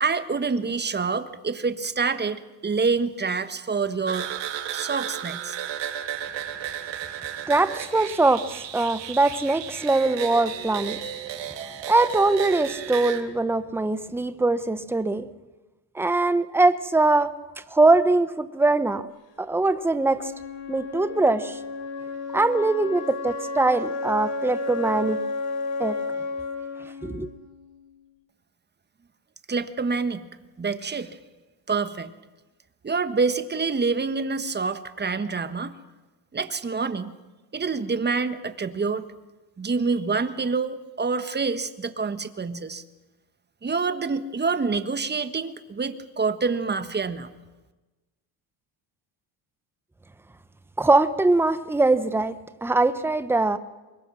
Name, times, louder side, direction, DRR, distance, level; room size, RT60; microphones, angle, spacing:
voice 1, 0.0-4.3 4.7-5.6 29.5-30.2 30.6-31.2 31.7-32.1 32.8-35.7 36.3-37.1 37.5-39.0 39.6-42.8 43.6-47.3, right 4 dB, 20° right, 11 dB, 1.4 m, -27 dB
sound 1, 4.1-13.2, right 10 dB, 65° right, 2.4 m, -34 dB
voice 2, 7.5-8.4 8.7-11.0 11.9-15.3 15.9-17.3 17.7-19.0 19.4-20.3 20.7-21.6 22.3-25.2 25.8-26.0 27.0-27.3 50.8-52.4 52.6-53.6, right 2 dB, 5° right, 12 dB, 0.9 m, -22 dB
Wind instrument woodwind instrument, 20.0-28.0, left 3 dB, 65° left, 3.8 m, -32 dB
24.5 x 21.5 x 6.2 m, 1.1 s
cardioid pair, 95°, 47 cm